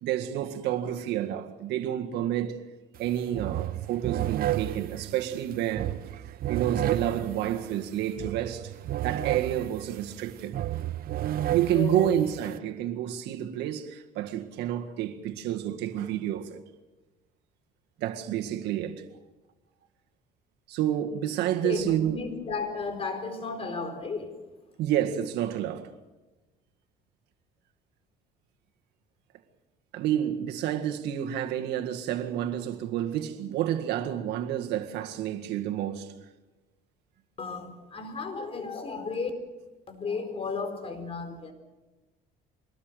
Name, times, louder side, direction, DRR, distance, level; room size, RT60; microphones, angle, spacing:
voice 1, 0.0-2.6 3.0-5.9 6.5-8.7 9.0-10.6 11.5-16.6 18.0-19.0 20.7-22.2 24.8-25.9 29.9-36.1, right 11 dB, 85° right, 1.9 m, -29 dB
sound 1, 2.9-3.1 3.3-12.6, right 13 dB, 60° right, 0.7 m, -32 dB
voice 2, 11.7-12.1 21.6-24.4 37.4-39.3 39.9-41.5, left 4 dB, 35° left, 4.3 m, -34 dB
25.0 x 20.0 x 6.8 m
cardioid pair, 110°, 17 cm